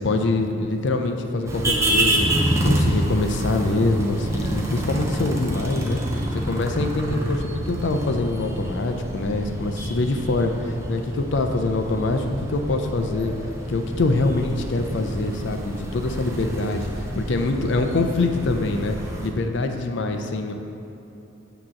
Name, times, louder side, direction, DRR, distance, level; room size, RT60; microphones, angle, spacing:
voice 1, 0.0-13.3 13.7-19.0 19.2-20.5, left 2 dB, 60° left, 5 dB, 0.4 m, -24 dB
sound 1, 1.5-19.3, right 1 dB, 15° right, 0.5 m, -27 dB
8.5 x 3.0 x 6.3 m, 2.9 s
head